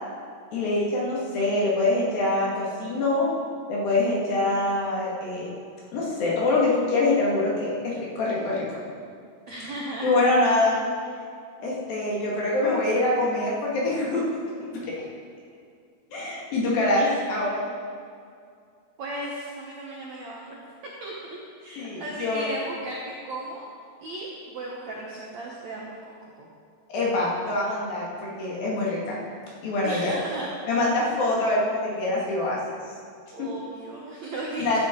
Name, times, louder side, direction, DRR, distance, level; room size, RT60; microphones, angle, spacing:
voice 1, 0.5-3.3 3.7-5.5 5.9-8.7 10.0-10.8 11.6-14.2 16.1-17.6 21.8-22.5 26.9-29.2 29.6-30.1 30.7-32.8 33.4-33.5 34.6-34.8, left 2 dB, 60° left, -5 dB, 3.8 m, -24 dB
voice 2, 9.5-10.1 10.6-10.7 17.0-17.1 19.0-20.6 21.0-23.6 24.0-26.5 29.8-30.7 33.3-34.8, right 1 dB, 70° right, -3 dB, 1.7 m, -36 dB
15.5 x 9.4 x 4.0 m, 2.3 s
omnidirectional pair, 4.9 m